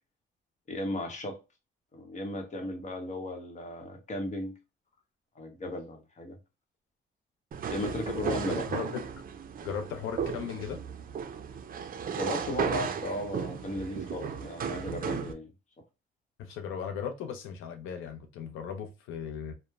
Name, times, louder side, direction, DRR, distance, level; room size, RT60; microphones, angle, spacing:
voice 1, 0.7-1.4 1.9-4.6 5.4-6.4 7.7-8.7 12.1-15.5, left 2 dB, 35° left, 0.9 m, -35 dB
sound 1, 7.5-15.3, right 7 dB, 45° right, 0.4 m, -35 dB
voice 2, 8.5-9.0 9.6-10.8 16.4-19.5, left 7 dB, 90° left, 0.5 m, -37 dB
3.0 x 2.1 x 2.3 m
cardioid pair, 90°, 20 cm